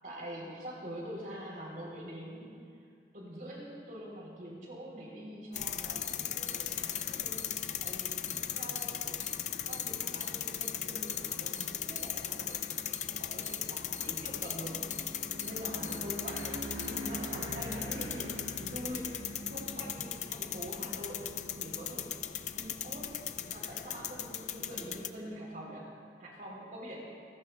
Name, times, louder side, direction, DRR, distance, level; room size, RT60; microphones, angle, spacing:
voice 1, 0.0-2.6 3.1-7.5 7.8-9.2 9.7-14.8 15.4-19.2 19.5-21.2 21.6-22.1 22.5-23.2 23.5-25.9 26.2-27.0, equal, 45° right, -2 dB, 3.6 m, -44 dB
sound 1, 5.5-25.1, left 10 dB, 40° left, 0.5 m, -38 dB
sound 2, 5.7-25.0, equal, 70° right, 1.8 m, -48 dB
sound 3, 6.0-6.1 6.5-6.6 6.9-7.0 7.4-7.5 7.8-7.9 8.3-8.4 8.8-8.9 9.2-9.3 9.7-9.8 10.2-10.3 10.6-10.7 11.1-11.2 11.6-11.7 12.0-12.1 12.5-12.6 12.9-13.0 13.4-13.6 13.9-14.1 14.4-14.6 14.9-15.0 15.4-15.5 15.8-16.0 16.4-16.5 16.8-16.9, left 3 dB, 15° left, 0.8 m, -46 dB
27.0 x 19.5 x 2.3 m, 2.3 s
head